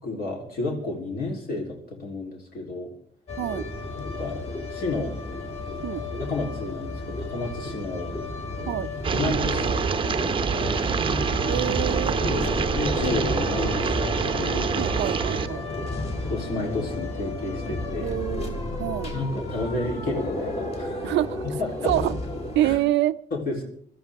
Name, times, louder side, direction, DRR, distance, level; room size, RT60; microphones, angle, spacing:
voice 1, 0.0-2.9 4.0-4.4 4.7-5.1 6.3-8.1 9.1-10.6 12.2-14.8 16.3-18.2 19.1-21.1 21.6-21.9 22.6-22.8 23.3-23.6, left 2 dB, 55° left, 0 dB, 3.7 m, -31 dB
sound 1, 3.3-22.8, left 2 dB, 35° left, 3.3 m, -32 dB
sound 2, 9.0-15.5, right 6 dB, 30° right, 0.7 m, -26 dB
voice 2, 11.5-12.2 14.8-15.6 18.0-19.1 21.0-21.4 21.9-22.2 22.5-23.2, right 14 dB, 80° right, 13 dB, 0.6 m, -26 dB
24.5 x 13.5 x 3.6 m, 0.62 s
cardioid pair, 140°, 18 cm